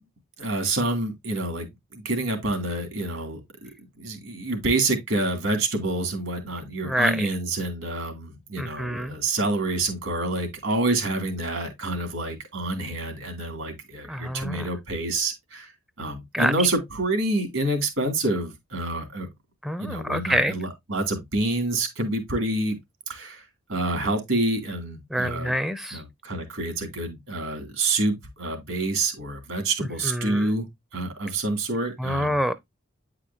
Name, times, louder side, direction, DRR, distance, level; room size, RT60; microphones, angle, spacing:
voice 1, 0.4-3.7 4.0-15.7 16.0-19.3 19.8-22.7 23.1-25.5 25.9-30.7 30.9-32.4, right 2 dB, 75° right, 2.6 m, -27 dB
voice 2, 6.8-7.3 8.6-9.1 14.1-14.6 16.3-16.5 19.6-20.6 25.1-26.0 30.1-30.5 32.0-32.5, equal, ahead, 0.4 m, -26 dB
9.3 x 4.9 x 2.7 m
head